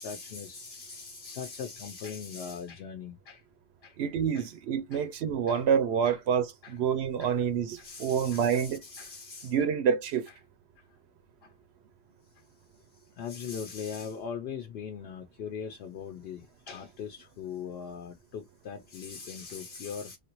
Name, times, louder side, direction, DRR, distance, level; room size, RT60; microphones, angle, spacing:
voice 1, 0.0-3.4 3.8-3.9 4.3-4.5 4.9-5.0 5.5-5.6 6.0-6.2 6.6-6.7 7.2-7.3 7.8-9.5 13.2-20.2, left 6 dB, 75° left, 0.9 m, -40 dB
voice 2, 4.0-8.8 9.4-10.3, right 7 dB, 85° right, 0.9 m, -27 dB
3.2 x 2.5 x 2.9 m
omnidirectional pair, 1.1 m